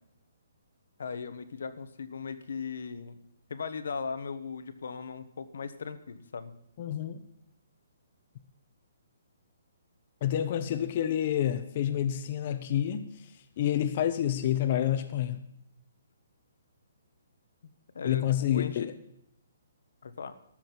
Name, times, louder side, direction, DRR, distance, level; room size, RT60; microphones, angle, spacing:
voice 1, 1.0-3.2 3.5-6.5 17.9-18.9 20.0-20.4, left 5 dB, 70° left, 10 dB, 1.2 m, -38 dB
voice 2, 6.8-7.2 10.2-13.0 13.6-15.4 18.0-18.9, left 11 dB, 40° left, 8 dB, 1.0 m, -28 dB
13.5 x 6.5 x 9.2 m, 0.75 s
hypercardioid pair, 160°, 0 cm